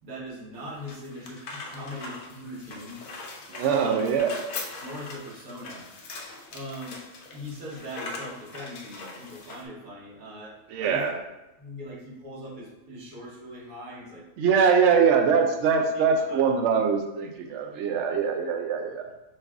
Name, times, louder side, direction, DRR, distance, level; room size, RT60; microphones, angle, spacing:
voice 1, 0.0-3.0 3.7-4.2 4.8-5.9 6.5-7.0 7.3-11.1 11.6-14.3 15.7-16.5, equal, 85° right, -6 dB, 1.6 m, -41 dB
sound 1, 0.6-9.7, left 3 dB, 80° left, 1.1 m, -41 dB
voice 2, 3.5-4.3 10.7-11.1 14.4-19.1, right 6 dB, 65° right, 4 dB, 0.8 m, -23 dB
5.3 x 2.5 x 3.5 m, 0.98 s
omnidirectional pair, 1.4 m